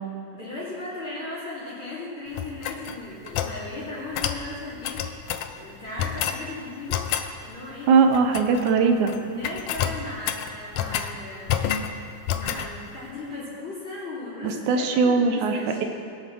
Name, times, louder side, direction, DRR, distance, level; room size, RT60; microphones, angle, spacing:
voice 1, 0.3-5.1 5.5-7.9 9.2-11.5 12.3-15.9, left 2 dB, 40° left, -9 dB, 3.1 m, -37 dB
sound 1, 2.3-3.6 4.1-4.4 4.8-5.5 6.0-6.4 6.9-7.3 8.1-8.7 9.0-9.2 9.4-11.1 11.5-11.9 12.3-12.7, left 9 dB, 90° left, 1.5 m, -28 dB
voice 2, 7.9-9.1 14.4-15.8, right 5 dB, 70° right, 5 dB, 2.1 m, -20 dB
21.0 x 8.5 x 6.2 m, 2.5 s
omnidirectional pair, 4.0 m